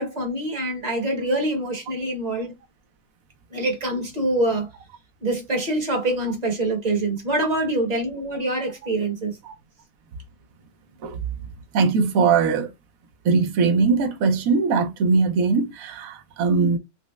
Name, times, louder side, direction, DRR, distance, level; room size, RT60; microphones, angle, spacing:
voice 1, 0.0-2.5 3.5-4.7 5.2-9.4, right 1 dB, 30° right, 1.1 m, -25 dB
voice 2, 11.7-12.7 13.2-16.8, right 4 dB, 70° right, 1.1 m, -20 dB
5.3 x 2.0 x 2.3 m
omnidirectional pair, 1.6 m